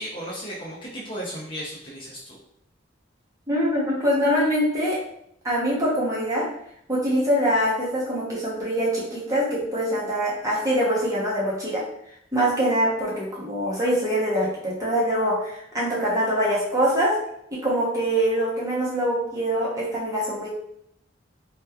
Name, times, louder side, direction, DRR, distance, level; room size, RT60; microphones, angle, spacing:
voice 1, 0.0-2.4, equal, 25° left, -5 dB, 0.5 m, -35 dB
voice 2, 3.5-5.0 5.4-6.4 6.9-11.8 12.3-17.1 17.5-20.5, equal, 15° right, -6 dB, 0.8 m, -24 dB
2.9 x 2.3 x 2.3 m, 0.73 s
head